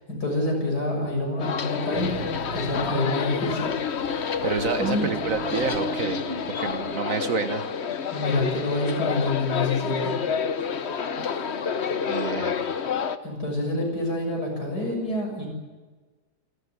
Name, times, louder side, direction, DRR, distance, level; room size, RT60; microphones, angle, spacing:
voice 1, 0.1-2.3 2.5-3.7 4.1-4.3 4.8-5.1 8.1-10.1 13.2-15.5, left 2 dB, 70° left, 1 dB, 7.6 m, -27 dB
sound 1, 1.4-13.2, left 6 dB, 45° left, 1.1 m, -29 dB
sound 2, 1.9-6.9, right 3 dB, 35° right, 1.2 m, -38 dB
voice 2, 4.4-6.2 6.5-7.6 12.1-12.6, right 5 dB, 55° right, 8 dB, 1.6 m, -28 dB
27.0 x 13.5 x 9.8 m, 1.3 s
omnidirectional pair, 1.8 m